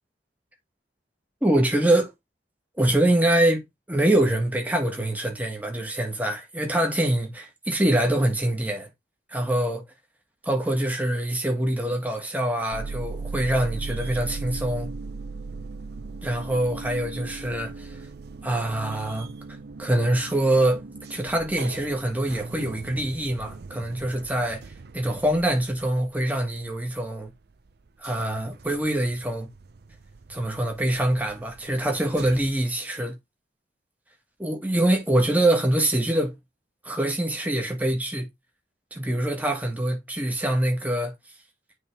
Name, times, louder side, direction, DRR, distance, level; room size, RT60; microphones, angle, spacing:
voice 1, 1.4-2.1 2.8-8.9 9.3-9.8 10.4-14.9 16.2-18.0 18.4-19.3 19.8-27.3 28.0-29.5 30.3-33.1 34.4-36.4 36.8-38.3 38.9-41.1, right 1 dB, 10° right, 1.6 m, -24 dB
sound 1, 12.7-27.3 27.7-32.5, right 3 dB, 60° right, 0.6 m, -39 dB
9.2 x 3.6 x 3.4 m
head